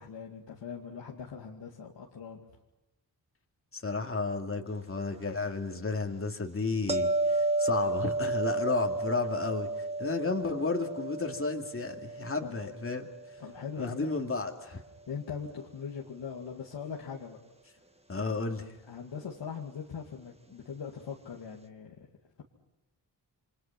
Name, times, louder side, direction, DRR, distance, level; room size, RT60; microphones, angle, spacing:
voice 1, 0.0-2.4 12.4-12.6 13.4-14.1 15.1-17.4 18.2-18.4 18.9-22.1, left 6 dB, 85° left, -2 dB, 2.5 m, -41 dB
voice 2, 3.7-9.7 10.0-13.1 13.8-14.8 18.1-18.6, left 3 dB, 30° left, 3 dB, 2.5 m, -32 dB
sound 1, 6.9-13.9 19.1-19.3, right 2 dB, 15° right, 1.8 m, -32 dB
28.5 x 25.0 x 6.0 m, 0.95 s
cardioid pair, 75°, 42 cm